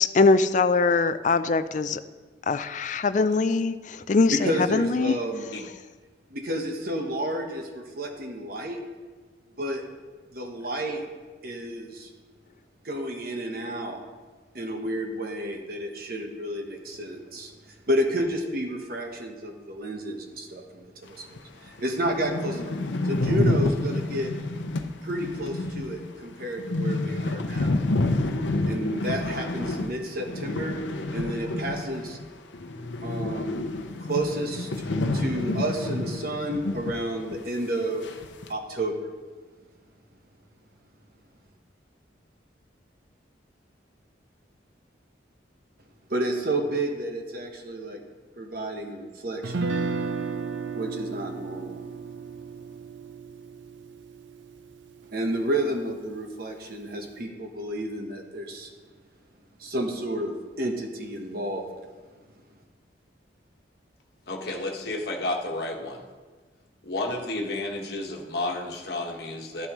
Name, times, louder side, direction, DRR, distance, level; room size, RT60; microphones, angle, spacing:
voice 1, 0.0-2.0 2.5-5.2, left 3 dB, 40° left, 12 dB, 0.4 m, -22 dB
voice 2, 4.3-5.5 6.3-8.8 9.6-9.8 10.3-11.0 11.4-12.1 12.8-14.0 14.5-17.5 17.9-22.8 23.0-24.3 25.0-27.8 28.7-30.8 31.1-32.2 33.0-33.6 34.0-34.7 35.1-38.0 38.5-39.1 46.1-48.0 48.4-49.6 50.7-51.8 55.1-58.7 59.6-61.7, right 1 dB, 50° right, 3 dB, 1.2 m, -31 dB
sound 1, 21.4-21.5 21.8-21.9 22.0-32.3 32.5-37.0 37.3-37.4 38.0-38.5, left 2 dB, 80° left, 0.7 m, -29 dB
Guitar, 49.4-55.6, right 4 dB, 80° right, 0.6 m, -34 dB
voice 3, 64.3-66.0 66.8-69.7, left 2 dB, 55° left, 0 dB, 1.4 m, -31 dB
12.0 x 11.0 x 3.1 m, 1.4 s
head